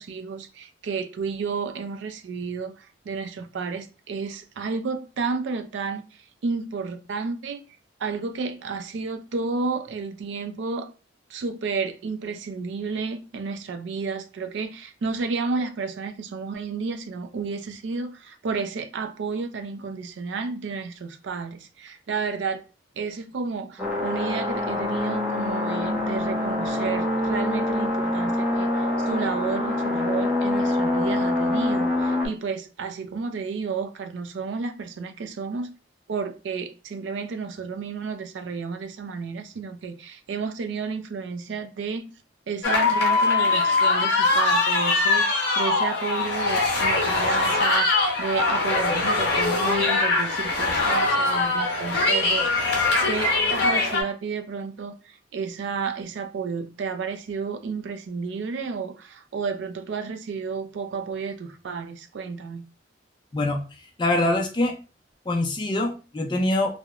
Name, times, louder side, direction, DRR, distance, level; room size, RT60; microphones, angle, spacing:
voice 1, 0.0-7.6 8.0-10.9 11.3-22.6 23.0-35.7 36.1-42.1 42.5-52.8 53.1-62.7, right 5 dB, 65° right, 0.4 m, -31 dB
sound 1, 23.8-32.3, left 2 dB, 5° right, 0.8 m, -25 dB
sound 2, 42.6-54.0, left 3 dB, 60° left, 0.7 m, -22 dB
voice 2, 64.0-64.8 65.3-66.8, left 1 dB, 25° left, 0.4 m, -24 dB
2.8 x 2.0 x 2.3 m
head